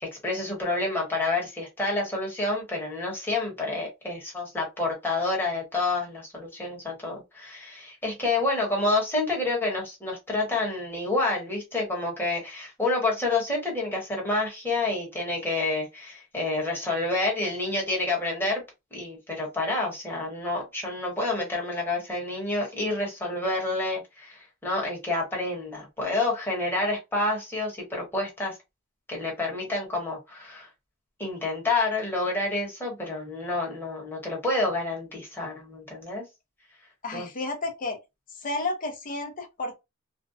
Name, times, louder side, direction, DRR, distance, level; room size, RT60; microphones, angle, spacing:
voice 1, 0.0-18.6 18.9-28.6 29.1-30.7 31.2-36.2 37.1-37.3, left 2 dB, 10° left, 1.1 m, -28 dB
voice 2, 37.0-38.0 38.4-39.8, left 2 dB, 40° left, 0.6 m, -31 dB
2.5 x 2.1 x 2.5 m
head